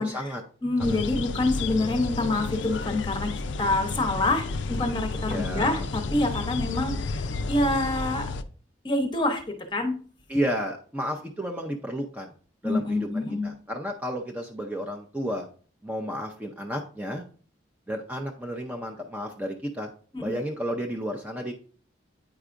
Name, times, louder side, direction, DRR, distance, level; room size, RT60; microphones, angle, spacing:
voice 1, 0.0-0.4 0.8-1.0 5.3-5.8 10.3-12.3 12.6-15.5 15.8-17.2 17.9-19.9 20.2-21.5, equal, 10° right, 2 dB, 0.5 m, -32 dB
voice 2, 0.6-3.3 3.6-8.3 8.8-10.0 12.6-13.5 20.1-20.3, left 2 dB, 25° left, 6 dB, 0.8 m, -27 dB
sound 1, 0.8-8.4, left 3 dB, 75° left, 0.4 m, -32 dB
8.9 x 4.7 x 2.5 m, 0.42 s
head